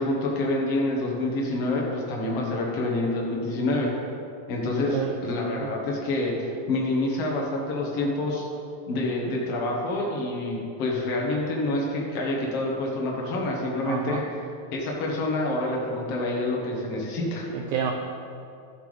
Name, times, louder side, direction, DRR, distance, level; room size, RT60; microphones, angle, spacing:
voice 1, 0.0-3.9 4.5-8.4 8.9-14.2 14.7-17.5, left 2 dB, 55° left, -2 dB, 2.0 m, -27 dB
voice 2, 13.9-14.2 17.5-17.9, right 8 dB, 85° right, 4 dB, 1.8 m, -29 dB
14.0 x 7.8 x 3.4 m, 2.7 s
omnidirectional pair, 4.1 m